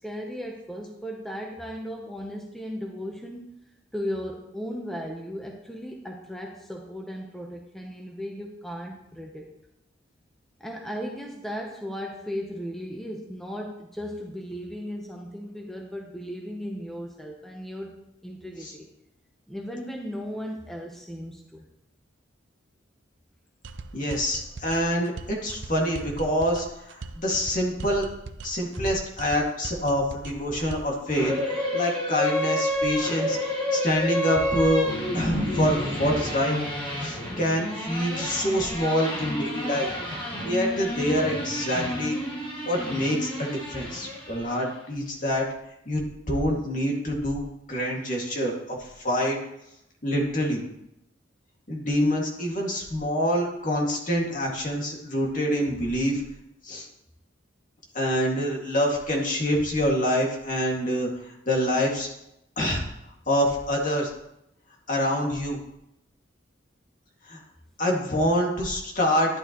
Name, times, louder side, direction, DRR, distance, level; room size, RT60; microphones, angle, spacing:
voice 1, 0.0-3.6 3.9-9.5 10.6-18.0 18.2-18.9 19.5-21.6, equal, ahead, 0 dB, 0.9 m, -36 dB
sound 1, 23.6-31.0, right 3 dB, 75° right, 0.6 m, -40 dB
voice 2, 23.9-28.1 28.4-33.4 33.7-34.9 35.1-36.6 37.0-39.9 40.4-42.2 42.7-45.5 45.9-47.4 47.7-49.4 50.0-50.6 51.7-56.2 56.6-56.9 57.9-62.1 62.6-62.8 63.3-64.1 64.9-65.6 67.2-67.4 67.8-69.4, equal, 45° left, -1 dB, 2.2 m, -26 dB
sound 2, 31.1-44.7, left 1 dB, 25° left, 2.6 m, -30 dB
11.0 x 11.0 x 3.0 m, 0.82 s
head